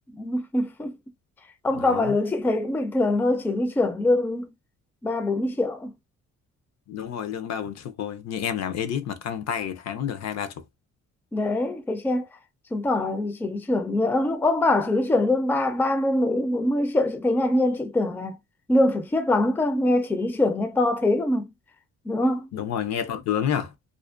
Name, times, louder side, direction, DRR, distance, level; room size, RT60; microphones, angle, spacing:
voice 1, 0.2-1.0 1.6-4.5 5.0-5.9 11.3-12.3 12.7-18.4 18.7-21.5 22.1-22.5, left 2 dB, 5° left, 0.4 m, -23 dB
voice 2, 1.7-2.1 6.9-10.5 22.5-23.7, left 9 dB, 60° left, 0.5 m, -29 dB
2.5 x 2.1 x 2.4 m
cardioid pair, 90°, 30 cm